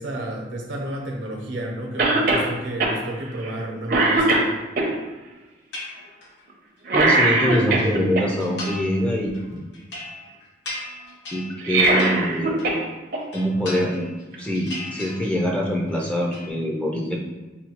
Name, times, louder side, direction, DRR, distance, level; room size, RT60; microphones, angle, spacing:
voice 1, 0.0-4.4, right 1 dB, 80° right, 0 dB, 0.9 m, -31 dB
Cough, 2.0-2.5 2.8-3.0 3.4-3.6 3.9-4.9 6.9-8.2 11.5-12.8 13.1-13.2 14.3-14.4, right 2 dB, 50° right, 0.6 m, -20 dB
sound 1, 5.7-6.4 6.8-7.9 8.4-9.0 9.3-12.9 13.2-14.2 14.5-15.6 15.9-16.5, left 1 dB, 70° left, 1.0 m, -37 dB
voice 2, 6.9-9.6 11.3-12.6 13.3-14.1 14.4-17.2, equal, 5° left, -1 dB, 0.4 m, -24 dB
5.6 x 2.3 x 2.9 m, 1.2 s
head